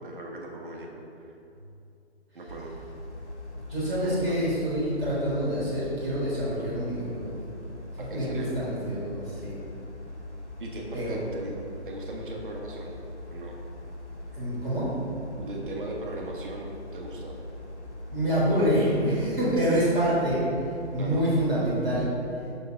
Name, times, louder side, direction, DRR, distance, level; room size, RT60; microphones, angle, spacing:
voice 1, 0.0-1.3 2.3-2.7 4.0-4.4 8.0-8.6 10.6-11.5 11.8-13.0 13.3-13.6 15.4-17.4 19.5-19.7 21.0-21.2, right 2 dB, 50° right, 0 dB, 1.3 m, -38 dB
sound 1, 2.5-21.9, left 1 dB, 80° left, 1.4 m, -41 dB
voice 2, 3.5-7.3 8.1-9.5 10.9-11.2 14.3-14.9 18.1-20.4 20.9-22.1, equal, ahead, -24 dB, 0.5 m, -26 dB
6.4 x 4.8 x 5.3 m, 2.6 s
figure-of-eight pair, 140°, 34 cm